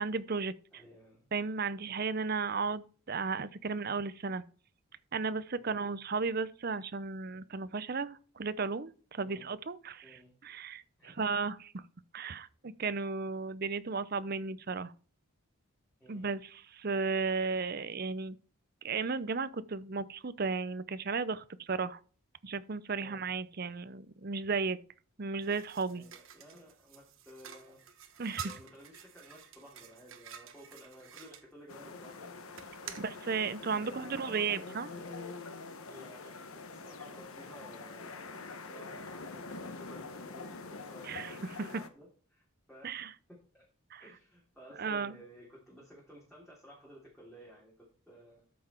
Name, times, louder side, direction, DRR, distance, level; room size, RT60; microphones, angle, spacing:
voice 1, 0.0-0.8 1.3-4.4 5.1-10.8 11.2-11.6 12.1-14.9 16.1-18.4 18.8-22.0 22.4-24.8 25.2-26.0 28.2-28.5 33.0-34.9 41.0-41.7 42.8-43.1 43.9-44.0 44.8-45.2, right 4 dB, 45° right, 0.6 m, -34 dB
voice 2, 0.7-1.2 5.6-5.9 9.2-9.5 10.0-10.3 11.0-11.4 16.0-16.3 23.0-23.2 25.9-27.8 28.4-32.4 32.8-33.1 33.4-35.4 35.9-36.3 36.7-43.6 44.0-48.5, equal, ahead, 3.3 m, -54 dB
sound 1, 25.4-31.4 32.5-33.1, right 8 dB, 65° right, 1.2 m, -49 dB
sound 2, 31.7-41.9, left 3 dB, 80° left, 1.2 m, -45 dB
13.5 x 6.0 x 4.4 m
head